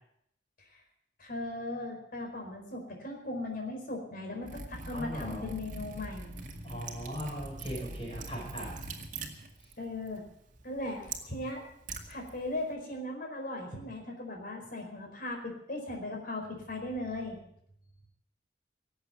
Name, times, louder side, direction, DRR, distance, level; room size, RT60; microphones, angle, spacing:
voice 1, 1.2-6.5 9.8-10.2 10.6-11.6 12.1-17.4, left 2 dB, 55° left, 1 dB, 4.8 m, -38 dB
Liquid, 4.4-12.7, right 3 dB, 45° right, 2.1 m, -43 dB
voice 2, 4.9-5.5 6.6-8.7, equal, 30° left, -2 dB, 5.4 m, -38 dB
18.0 x 8.1 x 8.9 m, 0.73 s
head